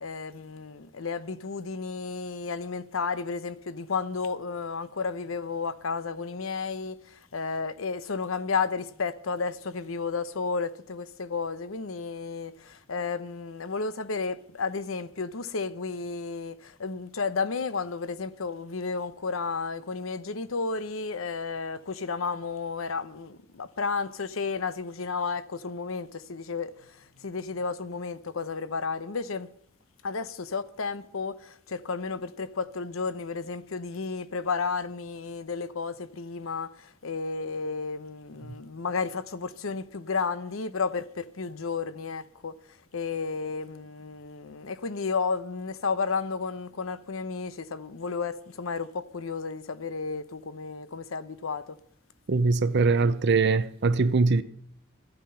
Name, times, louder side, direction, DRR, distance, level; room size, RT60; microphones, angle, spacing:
voice 1, 0.0-6.9 7.3-26.7 27.2-29.5 30.0-42.5 42.9-51.7, left 4 dB, 85° left, 0.8 m, -32 dB
voice 2, 52.3-54.4, right 3 dB, 55° right, 0.6 m, -22 dB
14.0 x 8.9 x 5.6 m
head